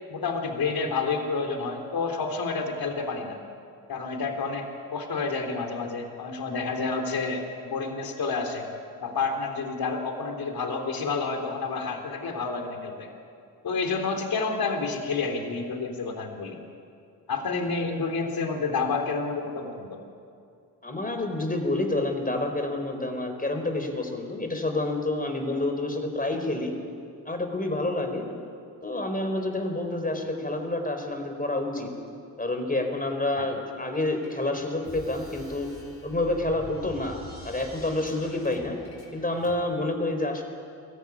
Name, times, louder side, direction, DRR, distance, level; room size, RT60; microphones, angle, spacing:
voice 1, 0.1-3.4 3.9-8.7 9.0-13.1 13.6-16.6 17.3-20.0, left 4 dB, 60° left, 4 dB, 3.5 m, -29 dB
voice 2, 20.8-26.7 27.2-28.3 28.8-31.9 32.4-35.7 36.0-37.2 37.4-38.8 39.1-40.4, left 2 dB, 20° left, 5 dB, 4.6 m, -28 dB
sound 1, 33.9-39.5, left 1 dB, 40° left, 6.1 m, -46 dB
21.5 x 15.0 x 9.9 m, 2.4 s
supercardioid pair, 50°, 40 cm